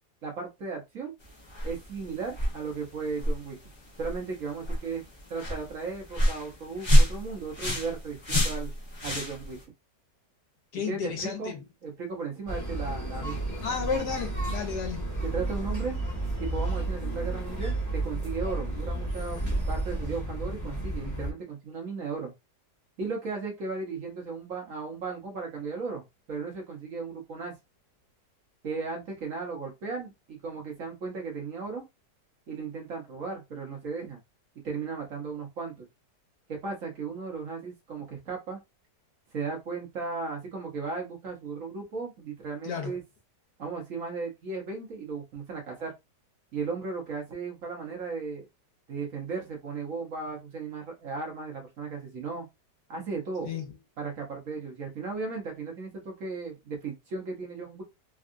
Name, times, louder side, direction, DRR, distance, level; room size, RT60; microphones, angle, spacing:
voice 1, 0.2-1.1 1.6-3.6 4.0-5.0 5.3-8.7 9.0-9.6 10.8-11.5 11.8-13.5 15.2-16.0 16.4-19.4 19.7-22.3 23.0-27.5 28.6-31.8 32.5-34.2 34.6-35.9 36.5-38.6 39.3-43.0 43.6-45.9 46.5-48.5 48.9-52.5 52.9-53.5 54.0-57.8, right 4 dB, 55° right, 1.2 m, -36 dB
sound 1, 1.2-9.6, equal, 40° left, 0.4 m, -28 dB
voice 2, 10.7-11.6 13.6-15.1 42.6-43.0 53.4-53.7, left 5 dB, 75° left, 1.5 m, -32 dB
sound 2, 12.5-21.3, right 2 dB, 15° left, 0.8 m, -32 dB
3.6 x 2.3 x 2.5 m
omnidirectional pair, 1.8 m